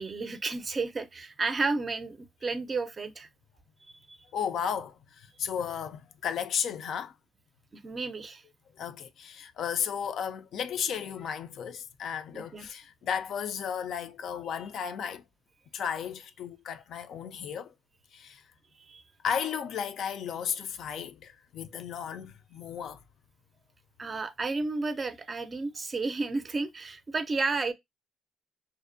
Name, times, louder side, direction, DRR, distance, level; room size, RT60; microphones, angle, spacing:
voice 1, 0.0-3.3 4.1-4.2 7.7-8.4 12.3-12.7 18.7-19.1 24.0-27.7, right 3 dB, 35° right, 0.4 m, -32 dB
voice 2, 4.3-7.1 8.8-15.2 15.7-17.7 18.1-18.4 19.2-23.0, left 8 dB, 70° left, 0.3 m, -34 dB
2.5 x 2.0 x 2.5 m
cardioid pair, 90°, 0 cm